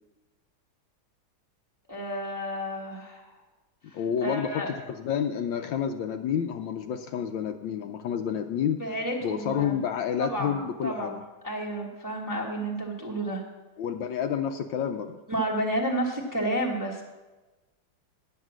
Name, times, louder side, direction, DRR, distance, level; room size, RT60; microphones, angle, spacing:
voice 1, 1.9-3.2 3.9-4.7 8.8-9.8 10.2-11.2 11.4-13.4 15.3-17.0, right 1 dB, 15° right, -1 dB, 0.8 m, -31 dB
voice 2, 3.9-8.8 9.2-11.2 13.8-15.2, left 8 dB, 75° left, 7 dB, 1.2 m, -29 dB
9.7 x 8.1 x 6.1 m, 1.2 s
omnidirectional pair, 2.3 m